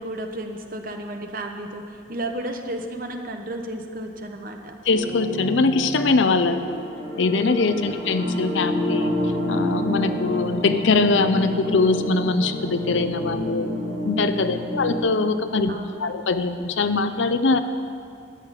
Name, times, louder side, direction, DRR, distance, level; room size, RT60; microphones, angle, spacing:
voice 1, 0.0-4.7 7.9-8.0 14.5-14.9 15.7-16.1, right 1 dB, 45° right, 4 dB, 1.1 m, -33 dB
voice 2, 4.9-6.8 7.2-9.1 9.5-13.7 14.0-15.7 16.0-17.6, left 3 dB, 80° left, 10 dB, 0.6 m, -22 dB
sound 1, 4.9-15.0, left 1 dB, 40° left, 3.6 m, -28 dB
13.5 x 6.5 x 9.8 m, 2.4 s
head